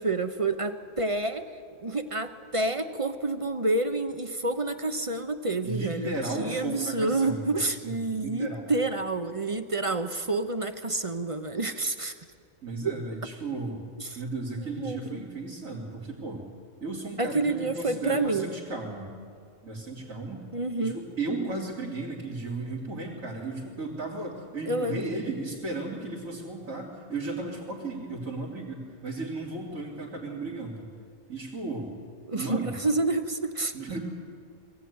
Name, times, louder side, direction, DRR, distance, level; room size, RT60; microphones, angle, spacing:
voice 1, 0.0-1.5 1.8-12.1 14.0-14.2 14.8-15.3 17.2-18.5 20.5-21.0 24.7-25.1 32.3-33.7, right 2 dB, 30° right, 9 dB, 0.8 m, -29 dB
voice 2, 5.6-7.5 7.8-7.9 8.2-8.7 12.6-13.8 14.1-16.4 16.8-19.1 19.6-20.4 20.8-30.9 31.3-31.9 32.3-32.8 33.7-34.0, right 3 dB, 85° right, -7 dB, 3.6 m, -34 dB
21.5 x 15.5 x 9.6 m, 2.2 s
omnidirectional pair, 1.4 m